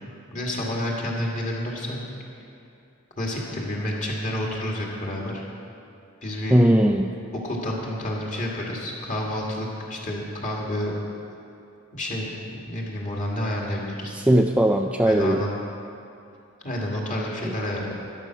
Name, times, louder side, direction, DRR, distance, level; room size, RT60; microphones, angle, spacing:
voice 1, 0.3-2.0 3.2-5.4 6.2-6.6 7.3-10.9 11.9-14.1 15.0-15.6 16.6-17.9, left 1 dB, 35° left, -2 dB, 2.3 m, -29 dB
voice 2, 6.5-7.1 14.1-15.4 17.4-17.5, right 1 dB, 5° right, 3 dB, 0.3 m, -19 dB
12.5 x 11.0 x 6.0 m, 2.6 s
head